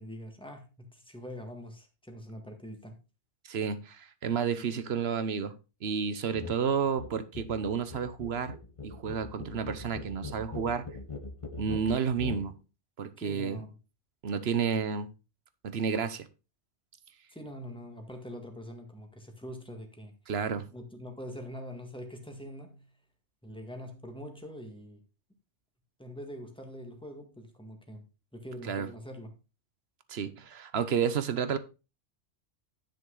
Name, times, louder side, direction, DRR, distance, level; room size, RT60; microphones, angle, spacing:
voice 1, 0.0-3.0 13.2-13.8 17.3-20.2 20.7-22.9 23.4-25.0 26.0-28.1 28.3-29.4, equal, 5° left, 1.8 m, -44 dB
voice 2, 3.4-5.5 5.8-8.6 8.8-10.8 11.6-12.5 13.0-13.6 14.2-15.1 15.6-16.3 20.3-20.7 28.7-28.9 30.1-31.6, right 6 dB, 60° right, 1.1 m, -31 dB
sound 1, 6.3-6.6 6.9-12.5, left 3 dB, 30° left, 0.9 m, -41 dB
10.5 x 6.5 x 3.9 m
omnidirectional pair, 1.3 m